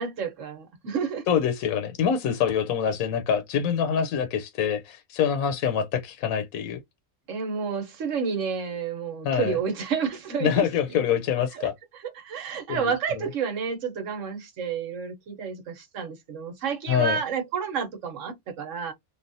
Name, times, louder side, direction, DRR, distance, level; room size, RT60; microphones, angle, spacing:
voice 1, 0.0-1.2 7.3-10.6 10.9-11.0 11.5-11.7 12.1-18.9, right 6 dB, 60° right, 1.1 m, -30 dB
voice 2, 1.3-6.8 9.2-9.6 10.4-11.7 12.7-12.9 16.9-17.2, left 8 dB, 75° left, 1.0 m, -25 dB
3.2 x 2.3 x 2.5 m
omnidirectional pair, 1.5 m